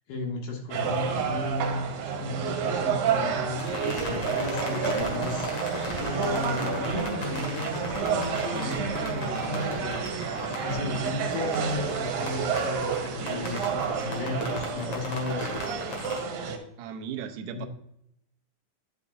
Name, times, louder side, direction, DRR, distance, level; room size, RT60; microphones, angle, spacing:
voice 1, 0.1-1.8 2.1-5.5 6.0-15.6 17.5-17.7, left 2 dB, 70° left, 0 dB, 3.4 m, -34 dB
sound 1, 0.7-16.6, right 6 dB, 70° right, 2.5 m, -30 dB
sound 2, 3.6-16.2, left 1 dB, 45° left, 2.4 m, -37 dB
voice 2, 16.8-17.7, right 8 dB, 90° right, 4 dB, 1.7 m, -36 dB
9.6 x 6.8 x 2.5 m, 0.75 s
omnidirectional pair, 4.6 m